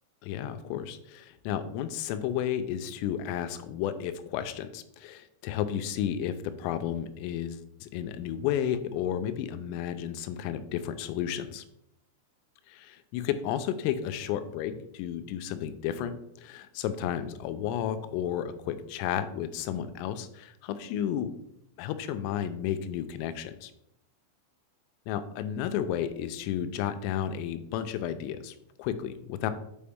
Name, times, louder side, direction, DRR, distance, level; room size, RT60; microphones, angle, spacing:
voice 1, 0.2-11.6 12.7-21.3 21.8-23.7 25.1-29.5, left 10 dB, 85° left, 10 dB, 3.2 m, -32 dB
8.6 x 4.6 x 3.5 m, 0.78 s
omnidirectional pair, 5.9 m